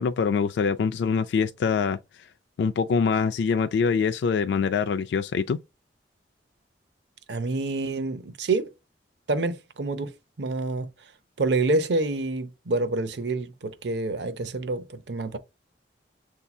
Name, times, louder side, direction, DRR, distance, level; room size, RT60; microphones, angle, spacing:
voice 1, 0.0-2.0 2.6-5.6, left 5 dB, 70° left, 0.3 m, -24 dB
voice 2, 7.3-8.7 9.3-10.1 10.4-10.9 11.4-15.4, right 3 dB, 75° right, 0.6 m, -27 dB
6.8 x 2.8 x 2.3 m
head